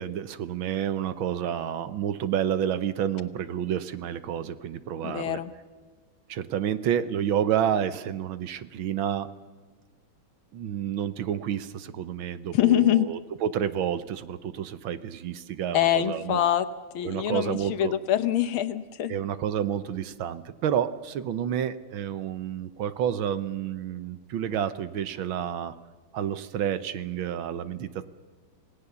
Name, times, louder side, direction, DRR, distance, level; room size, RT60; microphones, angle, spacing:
voice 1, 0.0-5.4 6.3-9.3 10.5-16.4 17.0-17.9 19.1-25.7 26.1-28.1, right 9 dB, 70° right, 13 dB, 1.6 m, -29 dB
voice 2, 5.0-5.5 12.5-13.1 15.7-16.7 16.9-19.1, left 12 dB, 70° left, 10 dB, 1.8 m, -24 dB
27.0 x 17.5 x 6.9 m, 1.4 s
omnidirectional pair, 2.4 m